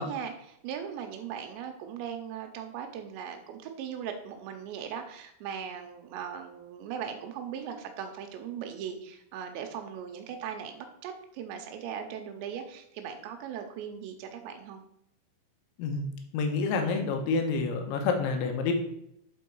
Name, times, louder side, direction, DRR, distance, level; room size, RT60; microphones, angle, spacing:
voice 1, 0.0-14.8, right 8 dB, 85° right, 5 dB, 3.0 m, -39 dB
voice 2, 16.3-18.7, left 4 dB, 90° left, 4 dB, 3.3 m, -28 dB
8.2 x 4.5 x 4.5 m, 0.75 s
omnidirectional pair, 5.1 m